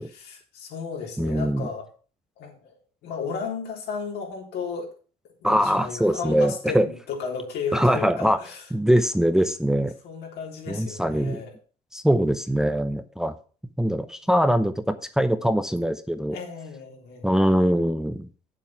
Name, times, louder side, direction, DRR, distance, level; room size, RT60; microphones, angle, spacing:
voice 1, 0.0-1.9 2.4-2.7 3.0-4.9 5.4-9.0 10.0-11.5 16.3-17.3, left 5 dB, 80° left, 0 dB, 3.9 m, -34 dB
voice 2, 1.2-1.7 5.4-6.9 7.7-8.4 8.7-9.9 10.7-11.4 11.9-13.3 13.8-16.4 17.2-18.3, equal, 5° right, 9 dB, 0.8 m, -22 dB
8.6 x 7.4 x 5.8 m, 0.38 s
cardioid pair, 110°, 17 cm